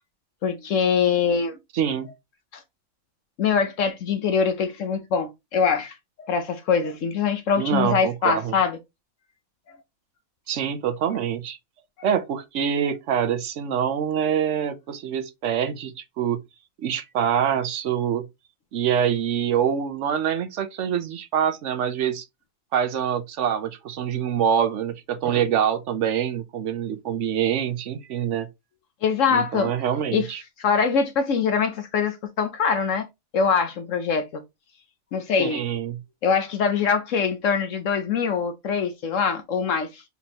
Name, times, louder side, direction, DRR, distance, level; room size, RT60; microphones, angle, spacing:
voice 1, 0.4-1.6 2.5-2.6 3.4-8.8 29.0-29.7 30.1-30.3 30.6-33.1 33.3-34.4 35.1-35.6 36.2-40.0, left 6 dB, 65° left, 1.1 m, -23 dB
voice 2, 1.7-2.1 7.6-8.5 10.5-11.6 12.0-16.4 16.8-18.3 18.7-22.2 22.7-28.5 29.3-30.4 35.4-36.0, right 8 dB, 65° right, 1.0 m, -25 dB
4.6 x 4.1 x 2.8 m
omnidirectional pair, 1.5 m